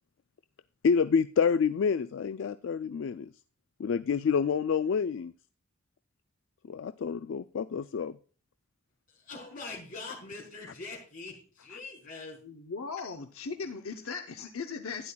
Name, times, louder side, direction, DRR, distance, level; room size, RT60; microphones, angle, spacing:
voice 1, 0.8-3.3 3.8-5.3 6.7-8.2, left 6 dB, 60° left, 13 dB, 0.3 m, -28 dB
voice 2, 9.1-12.4, left 3 dB, 40° left, -2 dB, 4.3 m, -43 dB
voice 3, 12.4-15.1, left 5 dB, 85° left, 5 dB, 0.8 m, -38 dB
12.0 x 10.0 x 2.3 m, 0.39 s
head